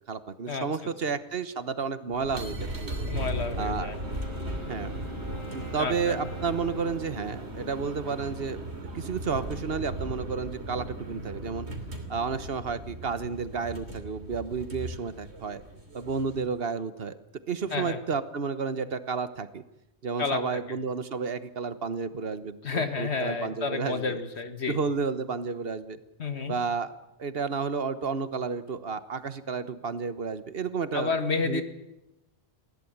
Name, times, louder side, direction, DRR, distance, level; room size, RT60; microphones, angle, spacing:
voice 1, 0.1-3.1 3.6-3.9 4.7-4.9 5.5-8.6 8.9-11.7 12.1-15.6 15.9-17.1 17.5-19.6 20.0-24.2 24.7-26.0 26.5-26.9 27.2-31.1 31.4-31.6, right 5 dB, 60° right, 13 dB, 1.3 m, -31 dB
sound 1, 2.1-16.5, right 1 dB, 80° right, 3.3 m, -37 dB
voice 2, 3.1-4.0 5.8-6.2 17.7-18.0 20.2-20.6 22.6-24.8 26.2-26.5 30.9-31.6, left 4 dB, 75° left, 9 dB, 1.9 m, -30 dB
Wind instrument woodwind instrument, 3.8-8.3, left 1 dB, 25° left, 1.6 m, -45 dB
20.0 x 16.0 x 8.7 m, 0.94 s
omnidirectional pair, 1.1 m